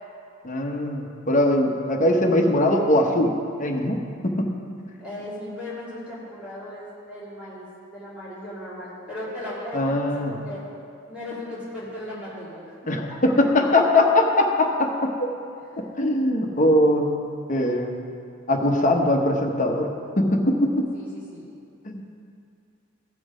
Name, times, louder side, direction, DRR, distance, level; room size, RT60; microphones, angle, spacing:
voice 1, 0.4-3.3 3.6-4.0 4.2-4.5 9.7-10.3 12.9-14.9 15.2-15.3 16.0-17.1 17.5-18.0 18.5-19.9 20.2-20.9 21.9-22.0, left 1 dB, 40° left, 2 dB, 1.0 m, -21 dB
voice 2, 5.0-10.6 11.1-12.8 13.1-13.2 15.6-15.8 20.9-21.4, left 1 dB, 5° right, -9 dB, 2.4 m, -37 dB
15.0 x 6.2 x 5.0 m, 2.4 s
head